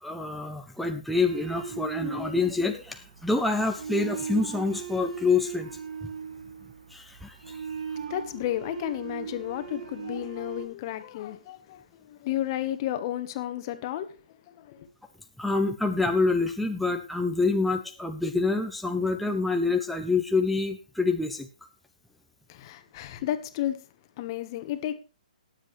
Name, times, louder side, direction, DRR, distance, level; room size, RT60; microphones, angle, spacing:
voice 1, 0.0-5.7 6.9-7.6 15.4-21.5, left 3 dB, ahead, 0.6 m, -27 dB
sound 1, 1.2-10.7, right 7 dB, 60° right, 1.6 m, -38 dB
voice 2, 8.1-14.9 22.5-23.8 24.2-24.9, left 12 dB, 30° left, 1.2 m, -32 dB
19.0 x 7.6 x 3.2 m
hypercardioid pair, 160°, 5 cm